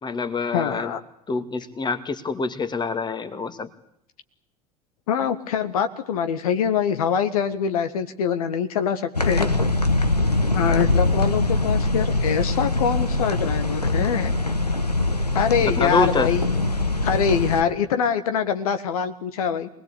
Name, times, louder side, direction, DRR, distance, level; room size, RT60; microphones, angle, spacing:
voice 1, 0.0-0.9 1.3-3.7 15.6-16.3, left 4 dB, 20° left, 11 dB, 2.4 m, -26 dB
voice 2, 0.5-1.0 5.1-9.5 10.5-14.3 15.3-16.6 17.0-19.7, left 7 dB, 65° left, 9 dB, 1.7 m, -24 dB
sound 1, 9.1-17.6, left 2 dB, 90° left, 1.4 m, -23 dB
25.5 x 20.0 x 8.6 m, 0.74 s
figure-of-eight pair, 75°, 20 cm